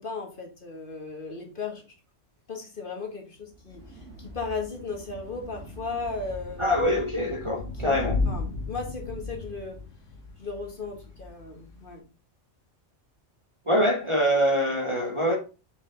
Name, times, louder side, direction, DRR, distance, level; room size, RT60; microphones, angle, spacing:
voice 1, 0.0-1.8 2.5-6.7 7.8-9.8 10.4-12.0, left 4 dB, 45° left, 2 dB, 1.7 m, -36 dB
sound 1, 3.4-8.2, equal, 65° right, 1.8 m, -46 dB
Thunder / Rain, 3.7-12.0, left 3 dB, 90° left, 2.0 m, -36 dB
voice 2, 6.6-8.2 13.7-15.4, equal, 25° right, 1 dB, 1.0 m, -24 dB
6.3 x 5.6 x 3.8 m, 0.32 s
omnidirectional pair, 1.3 m